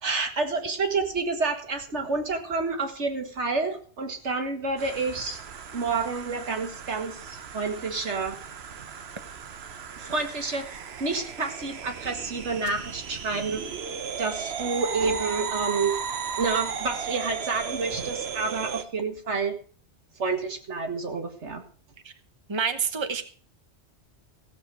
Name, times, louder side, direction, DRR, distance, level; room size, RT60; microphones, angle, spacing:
voice 1, 0.0-5.4 5.7-8.4 8.8-8.9 9.9-13.6 14.2-16.0 16.4-19.6 20.1-21.6, right 4 dB, 85° right, 5 dB, 2.1 m, -29 dB
sound 1, 4.8-18.8, right 7 dB, 65° right, 1.2 m, -36 dB
voice 2, 22.5-23.3, right 6 dB, 25° right, 9 dB, 1.1 m, -27 dB
16.0 x 7.5 x 6.2 m, 0.43 s
omnidirectional pair, 1.2 m